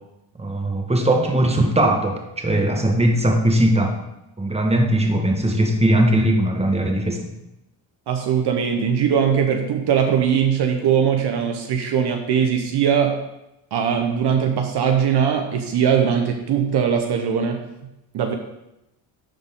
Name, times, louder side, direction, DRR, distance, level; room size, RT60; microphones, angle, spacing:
voice 1, 0.4-3.9 4.4-7.2, right 1 dB, 15° right, 3 dB, 1.4 m, -19 dB
voice 2, 8.1-13.2 13.7-17.6 18.1-18.3, right 7 dB, 60° right, 4 dB, 1.0 m, -20 dB
11.5 x 4.0 x 3.7 m, 0.90 s
supercardioid pair, 70°, 46 cm